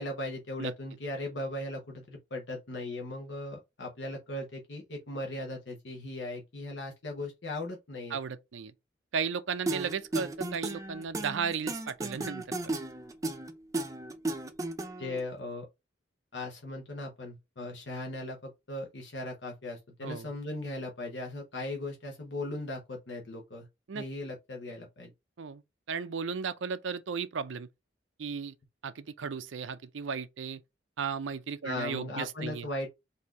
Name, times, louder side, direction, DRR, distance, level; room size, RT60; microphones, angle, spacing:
voice 1, 0.0-8.2 15.0-15.7 16.3-23.7 23.9-25.1 31.6-32.9, left 2 dB, 70° left, 1.0 m, -38 dB
voice 2, 8.1-8.7 9.1-12.8 20.0-20.3 23.9-24.0 25.4-25.6 25.9-27.7 28.2-28.5 28.8-30.6 31.0-32.7, right 6 dB, 85° right, 0.5 m, -35 dB
sound 1, 9.7-15.2, right 2 dB, 15° right, 0.5 m, -34 dB
4.2 x 2.7 x 4.6 m
head